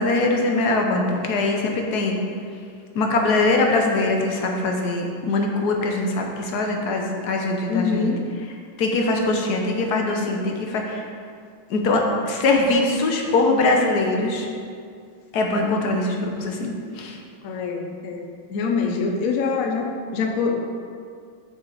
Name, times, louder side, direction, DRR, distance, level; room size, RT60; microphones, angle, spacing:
voice 1, 0.0-2.2 2.9-8.1 8.8-11.0 11.7-14.5 15.3-17.2 18.8-19.0, left 2 dB, 60° left, 1 dB, 1.2 m, -22 dB
voice 2, 7.7-8.3 17.4-19.9 20.1-20.6, left 5 dB, 80° left, 2 dB, 0.7 m, -25 dB
7.7 x 5.7 x 4.8 m, 2.3 s
omnidirectional pair, 2.4 m